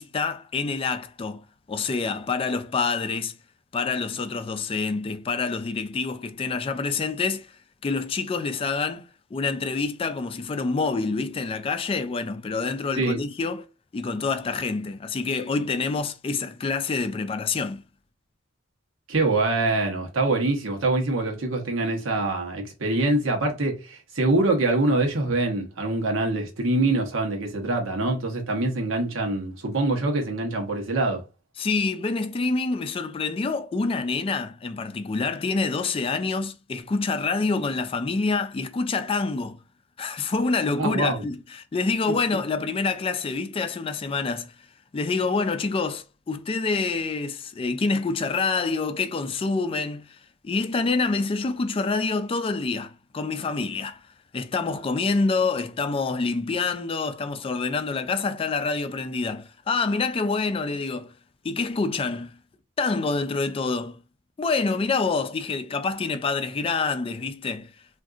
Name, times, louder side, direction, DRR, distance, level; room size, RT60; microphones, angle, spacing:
voice 1, 0.0-3.3 3.7-7.5 7.8-9.1 9.3-13.7 13.9-17.8 31.6-39.6 40.0-44.5 44.9-50.2 50.4-54.0 54.3-61.1 61.4-62.4 62.8-64.0 64.4-67.7, left 4 dB, 30° left, 0.3 m, -27 dB
voice 2, 19.1-31.2 40.8-41.2 42.1-42.2, right 2 dB, 85° right, 1.0 m, -24 dB
3.6 x 2.5 x 2.4 m
head